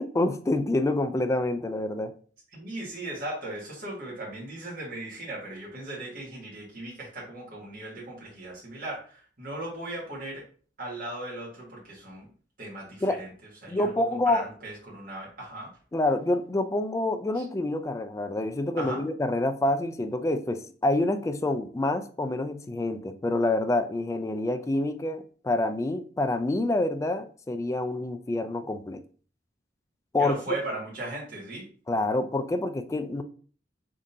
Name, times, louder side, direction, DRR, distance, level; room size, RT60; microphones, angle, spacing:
voice 1, 0.0-2.1 13.0-13.2 13.7-14.4 15.9-29.0 30.1-30.3 31.9-33.2, left 2 dB, 15° left, 10 dB, 0.3 m, -27 dB
voice 2, 2.5-10.4 10.8-12.3 12.6-13.3 13.6-15.7 17.4-17.5 18.8-19.0 30.2-31.6, right 2 dB, 55° right, -5 dB, 1.8 m, -37 dB
3.7 x 3.7 x 2.7 m, 0.42 s
head